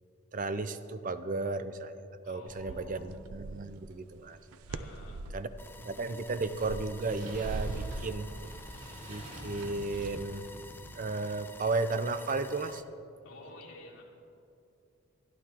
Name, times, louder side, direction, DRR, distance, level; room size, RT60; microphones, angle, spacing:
voice 1, 0.3-2.0 2.3-4.4 5.3-5.5 5.8-8.3 9.1-10.5 10.9-12.8, right 3 dB, 40° right, 11 dB, 0.5 m, -34 dB
voice 2, 2.2-3.1 4.7-5.3 13.2-14.0, left 2 dB, 75° left, -5 dB, 3.2 m, -51 dB
sound 1, 2.5-3.8 4.3-5.5 6.1-10.5, right 3 dB, 90° right, 0.6 m, -42 dB
sound 2, 5.6-12.8, left 1 dB, 10° left, 0.4 m, -50 dB
sound 3, 6.5-11.4, equal, 55° right, 3.1 m, -47 dB
23.5 x 11.5 x 3.0 m, 2.7 s
head